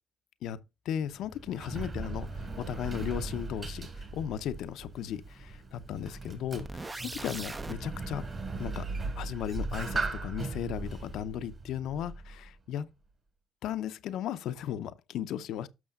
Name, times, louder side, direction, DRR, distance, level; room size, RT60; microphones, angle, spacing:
voice 1, 0.8-8.3 8.6-8.9 9.2-12.9 13.6-15.7, left 10 dB, 75° left, 0.7 m, -36 dB
Sliding door, 1.1-12.5, right 3 dB, 40° right, 4.0 m, -38 dB
sound 1, 6.6-7.8, right 2 dB, 20° right, 0.7 m, -40 dB
12.5 x 6.2 x 2.4 m
supercardioid pair, 70°, 0 cm